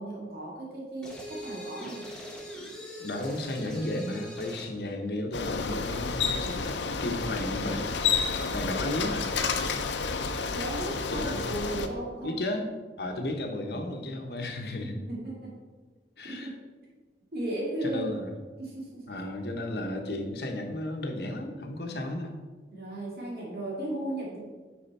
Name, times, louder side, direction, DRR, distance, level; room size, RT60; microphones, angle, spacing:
voice 1, 0.0-2.1 10.5-12.4 14.8-15.5 16.2-16.6 17.3-18.2 18.6-19.1 22.7-24.4, right 1 dB, 60° right, -5 dB, 2.1 m, -35 dB
sound 1, 1.0-4.8, equal, 5° left, 1.3 m, -42 dB
voice 2, 3.0-9.3 11.1-11.6 12.2-12.7 13.0-15.0 16.2-16.5 17.8-18.3 19.1-22.4, left 1 dB, 65° left, 4 dB, 1.0 m, -34 dB
Bicycle, 5.3-11.9, left 5 dB, 85° left, 0.6 m, -30 dB
8.6 x 5.2 x 4.2 m, 1.3 s
head